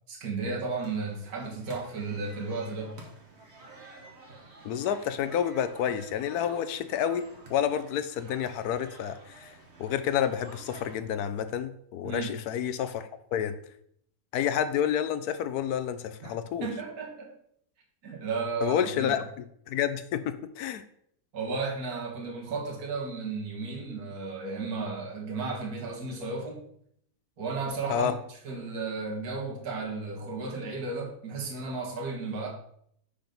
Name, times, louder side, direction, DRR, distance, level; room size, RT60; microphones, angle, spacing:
voice 1, 0.1-3.0 12.0-12.4 16.2-16.3 16.6-17.3 18.0-19.2 21.3-26.6 27.4-28.2 28.4-32.5, right 4 dB, 60° right, -1 dB, 2.0 m, -34 dB
sound 1, 0.8-11.0, right 2 dB, 40° right, 1.5 m, -50 dB
voice 2, 4.6-7.2 7.5-13.5 14.3-16.7 18.6-19.2 19.7-20.8 27.9-28.2, left 9 dB, 70° left, 11 dB, 1.0 m, -29 dB
6.0 x 5.2 x 5.3 m, 0.69 s
omnidirectional pair, 1.8 m